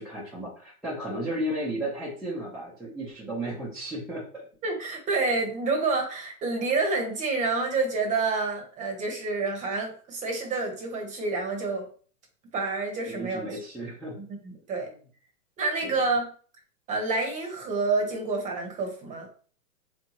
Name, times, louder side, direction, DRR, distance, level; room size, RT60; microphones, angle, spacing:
voice 1, 0.0-4.4 13.1-14.2 14.9-15.0 15.8-16.0, right 1 dB, ahead, -11 dB, 0.4 m, -34 dB
voice 2, 4.6-11.9 12.5-13.4 14.2-14.9 15.6-16.3 16.9-19.3, right 3 dB, 15° right, 2 dB, 0.8 m, -28 dB
3.4 x 2.7 x 2.9 m, 0.43 s
hypercardioid pair, 125°, 44 cm